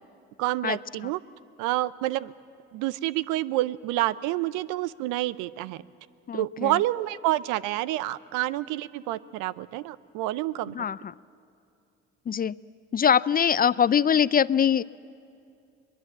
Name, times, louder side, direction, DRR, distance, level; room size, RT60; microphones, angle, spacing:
voice 1, 0.4-1.2 1.6-2.3 2.7-5.8 6.3-10.8, right 16 dB, 75° right, 19 dB, 0.6 m, -28 dB
voice 2, 6.3-6.7 10.7-11.1 12.3-12.6 12.9-14.8, left 8 dB, 30° left, 19 dB, 0.4 m, -23 dB
22.0 x 21.0 x 7.5 m, 2.5 s
hypercardioid pair, 60°, 32 cm